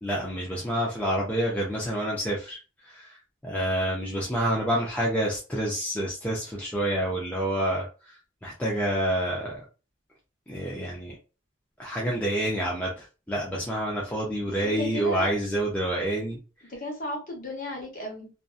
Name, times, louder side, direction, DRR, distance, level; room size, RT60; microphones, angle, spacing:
voice 1, 0.0-9.6 10.5-11.2 11.8-16.4, right 1 dB, 5° left, -4 dB, 0.4 m, -28 dB
voice 2, 14.6-15.3 16.7-18.3, left 1 dB, 40° left, 0 dB, 0.9 m, -34 dB
2.7 x 2.4 x 2.3 m, 0.33 s
head